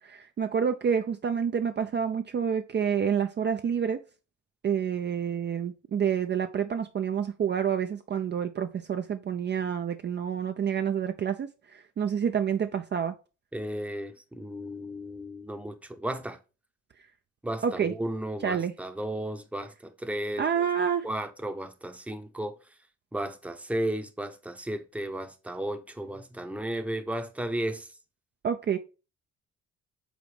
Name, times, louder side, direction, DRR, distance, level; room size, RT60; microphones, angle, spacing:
voice 1, 0.0-4.0 4.6-13.2 17.6-17.9 18.4-18.7 20.4-21.1 28.4-28.8, right 7 dB, 35° right, 0.5 m, -28 dB
voice 2, 13.5-16.4 17.4-20.6 21.0-22.5 23.1-27.9, right 1 dB, 5° right, 0.8 m, -34 dB
5.1 x 4.0 x 4.9 m
cardioid pair, 90°, 30 cm